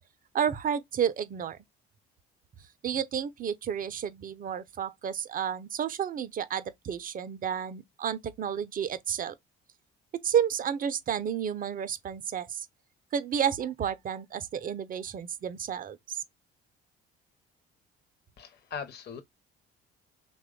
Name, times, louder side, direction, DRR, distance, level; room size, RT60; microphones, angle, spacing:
voice 1, 0.3-1.6 2.8-9.4 10.2-12.7 13.1-16.2, right 8 dB, 30° right, 0.4 m, -31 dB
voice 2, 18.4-19.2, left 6 dB, 35° left, 0.7 m, -40 dB
3.1 x 2.2 x 3.6 m
figure-of-eight pair, 50°, 31 cm